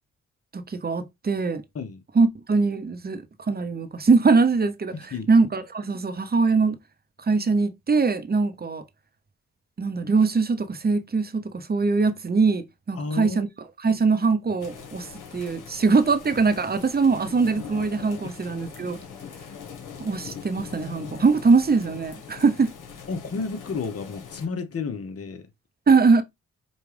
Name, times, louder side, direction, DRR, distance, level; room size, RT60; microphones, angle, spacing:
voice 1, 0.5-1.6 2.1-3.2 3.5-4.9 5.3-6.8 7.3-8.8 9.8-13.5 13.8-15.1 15.3-19.0 20.0-22.7 25.9-26.2, right 4 dB, 30° right, 0.8 m, -22 dB
voice 2, 4.9-5.3 13.0-13.4 18.2-18.3 23.1-25.5, left 4 dB, 50° left, 1.0 m, -32 dB
sound 1, 14.6-24.5, left 6 dB, 80° left, 1.3 m, -42 dB
5.2 x 2.4 x 3.3 m
supercardioid pair, 55°, 31 cm